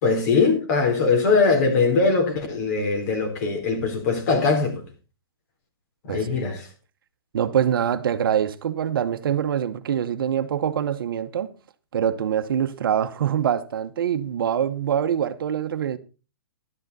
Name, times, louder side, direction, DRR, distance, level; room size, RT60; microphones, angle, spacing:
voice 1, 0.0-4.8 6.0-6.7, left 4 dB, 45° left, 3.7 m, -21 dB
voice 2, 7.3-11.5 11.9-16.0, right 9 dB, 65° right, 0.9 m, -24 dB
11.5 x 10.0 x 4.0 m
hypercardioid pair, 150°, 13 cm